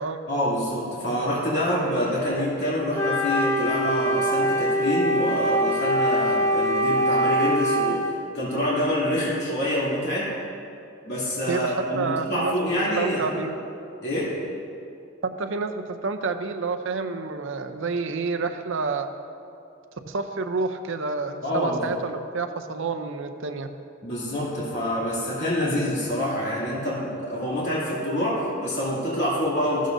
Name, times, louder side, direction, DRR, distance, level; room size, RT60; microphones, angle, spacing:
voice 1, 0.3-10.3 11.0-13.4 14.0-14.3 21.4-21.9 24.0-29.9, equal, 55° left, -8 dB, 2.8 m, -26 dB
Wind instrument woodwind instrument, 2.9-8.1, equal, 15° left, 0.6 m, -23 dB
voice 2, 11.5-12.6 13.0-13.6 15.2-19.1 20.1-23.8, right 4 dB, 60° right, 8 dB, 0.6 m, -29 dB
14.5 x 12.5 x 2.7 m, 2.6 s
head